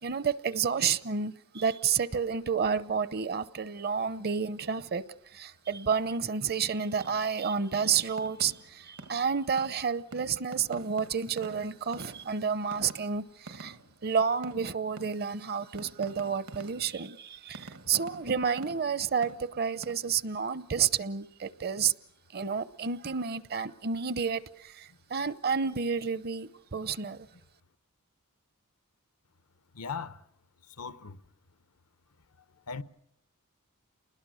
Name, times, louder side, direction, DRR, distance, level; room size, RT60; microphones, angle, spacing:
voice 1, 0.0-5.0 5.3-13.8 14.0-21.9 22.3-27.3, right 6 dB, 45° right, 0.8 m, -30 dB
sound 1, 7.0-7.5 7.7-14.1 14.4-15.5 15.8-17.1 17.5-19.9, right 2 dB, 75° right, 1.5 m, -48 dB
voice 2, 29.7-30.2 30.6-31.2 32.5-32.8, left 5 dB, 85° left, 1.0 m, -39 dB
29.0 x 21.0 x 6.4 m
head